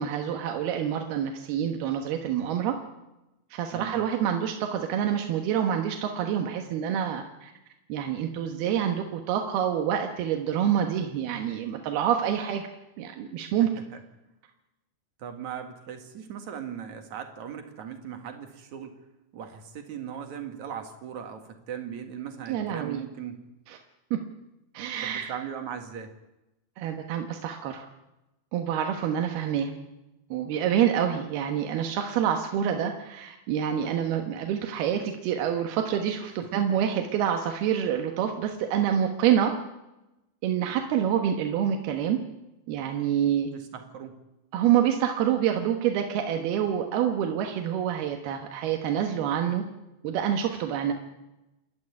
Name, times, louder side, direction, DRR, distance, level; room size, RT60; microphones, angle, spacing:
voice 1, 0.0-2.8 3.5-7.5 7.9-12.6 13.0-13.7 22.5-23.0 23.7-23.8 24.1-24.2 24.8-25.3 26.8-27.9 28.5-29.7 30.3-39.5 40.4-42.2 42.7-43.5 44.5-49.6 50.0-50.9, right 9 dB, 85° right, 4 dB, 3.3 m, -27 dB
voice 2, 15.2-18.9 19.3-23.4 25.0-26.1 36.4-36.8 43.5-44.2, right 8 dB, 55° right, 6 dB, 3.1 m, -38 dB
28.0 x 12.5 x 9.7 m, 0.97 s
omnidirectional pair, 4.4 m